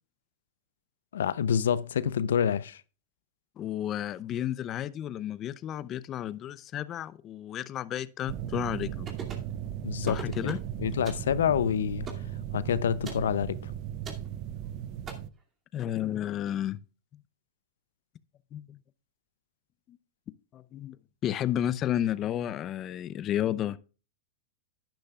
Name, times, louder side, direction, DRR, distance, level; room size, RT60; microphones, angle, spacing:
voice 1, 1.1-2.8 9.8-10.5 10.8-12.1 12.5-13.7, left 8 dB, 80° left, 0.5 m, -27 dB
voice 2, 3.6-9.1 10.0-10.6 15.7-16.8 18.5-18.8 19.9-20.0 20.5-21.0 21.2-23.8, left 11 dB, 35° left, 0.6 m, -32 dB
sound 1, 8.3-15.3, right 10 dB, 45° right, 0.6 m, -37 dB
sound 2, 9.1-9.5 10.0-10.7 11.0-11.3 12.1-12.3 13.0-13.3 14.0-14.3 15.1-15.2, right 4 dB, 25° right, 2.5 m, -41 dB
11.0 x 10.5 x 2.4 m
hypercardioid pair, 120°, 0 cm